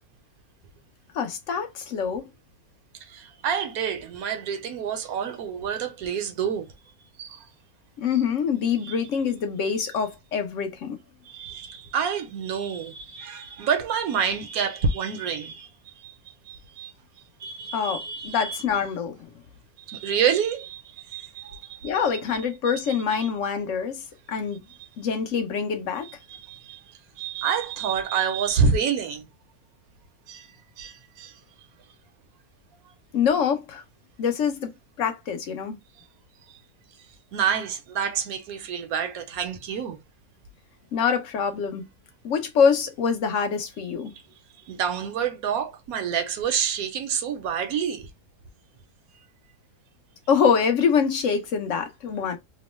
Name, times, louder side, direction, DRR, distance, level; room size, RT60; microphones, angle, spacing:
voice 1, 1.1-2.3 8.0-11.0 17.7-19.2 21.8-24.0 24.3-24.6 25.0-26.1 33.1-33.8 34.2-34.7 35.0-35.8 40.9-41.8 42.2-44.1 50.3-52.4, left 6 dB, 60° left, 1.0 m, -25 dB
voice 2, 3.1-6.7 7.2-7.4 8.8-9.0 11.3-16.2 16.5-16.9 17.4-18.6 19.9-22.2 22.7-23.3 26.3-26.8 27.2-29.3 30.3-30.5 30.8-31.3 37.3-40.0 44.7-48.1, right 7 dB, 75° right, 1.0 m, -28 dB
3.0 x 2.1 x 2.9 m
omnidirectional pair, 1.6 m